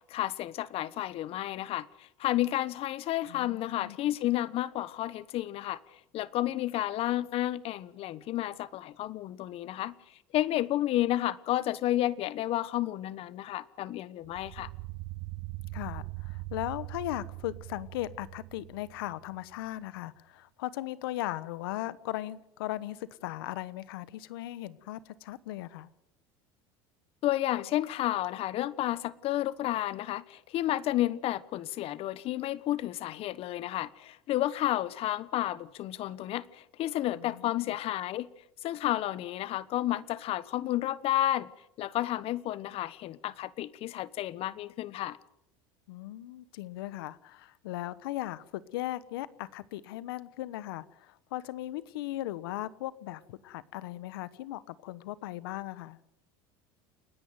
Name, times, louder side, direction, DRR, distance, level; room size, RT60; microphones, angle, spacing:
voice 1, 0.1-9.9 10.3-14.7 27.2-38.3 38.6-41.5 41.8-45.2, left 14 dB, 55° left, 1.2 m, -31 dB
voice 2, 3.3-4.0 15.7-25.9 37.2-37.7 45.9-56.0, left 15 dB, 85° left, 1.1 m, -38 dB
sound 1, 14.2-19.5, right 20 dB, 65° right, 0.7 m, -41 dB
29.5 x 10.0 x 9.3 m
supercardioid pair, 95°, 12 cm